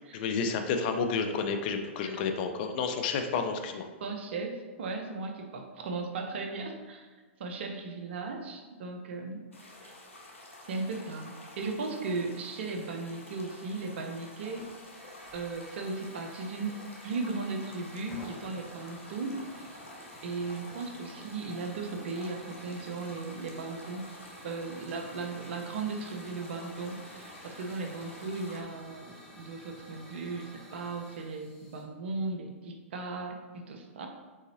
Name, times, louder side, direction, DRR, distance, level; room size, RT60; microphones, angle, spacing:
voice 1, 0.1-3.9, left 5 dB, 45° left, 6 dB, 0.5 m, -30 dB
voice 2, 4.0-7.1 7.4-9.4 9.8-9.9 10.6-14.7 15.3-19.8 20.2-24.1 24.4-34.1, right 3 dB, 60° right, 4 dB, 0.7 m, -37 dB
sound 1, 9.5-28.6, left 1 dB, 80° left, 0.9 m, -50 dB
Hiss / Fire, 14.5-31.8, equal, 5° left, 1.2 m, -52 dB
4.8 x 3.9 x 2.8 m, 1.4 s
figure-of-eight pair, 110°, 7 cm